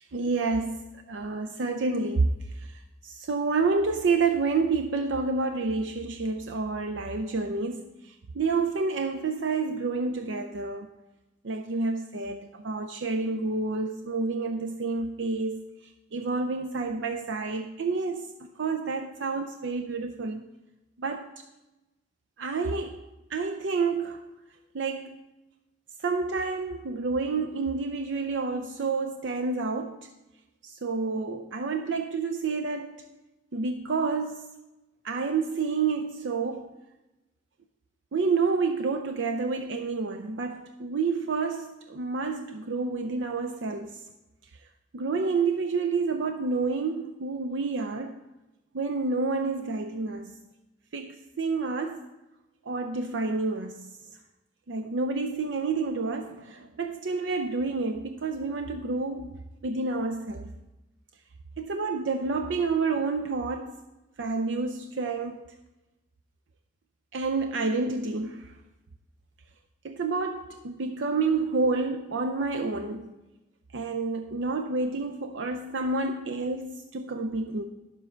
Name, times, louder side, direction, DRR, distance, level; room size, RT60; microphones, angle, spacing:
voice 1, 0.1-10.9 11.4-15.6 16.1-18.3 18.6-20.5 21.0-21.4 22.4-24.3 24.7-25.2 26.0-30.1 30.6-33.1 33.5-34.5 35.0-36.7 38.1-44.0 44.9-48.2 48.7-50.4 50.9-52.1 52.7-53.9 54.7-59.4 59.6-60.5 61.6-63.8 64.2-65.4 67.1-68.5 69.8-73.1 73.7-77.6, right 4 dB, 85° right, 0.5 m, -29 dB
10.5 x 7.3 x 4.4 m
head